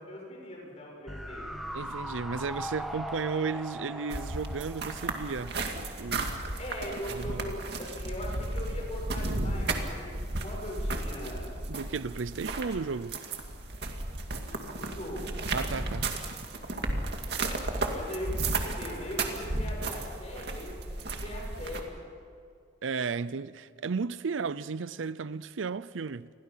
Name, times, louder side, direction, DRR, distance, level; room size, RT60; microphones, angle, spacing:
voice 1, 0.0-1.7 6.6-10.1 10.4-11.5 14.4-15.4 17.9-21.9, equal, 35° left, 7.3 m, -40 dB
sound 1, 1.1-6.3 6.6-6.7, equal, ahead, 1.2 m, -40 dB
voice 2, 1.7-6.4 7.2-7.5 11.7-13.2 15.5-16.1 22.8-26.3, right 5 dB, 90° right, 0.6 m, -34 dB
sound 2, 4.1-21.8, right 2 dB, 60° right, 2.3 m, -34 dB
29.5 x 22.5 x 5.7 m
head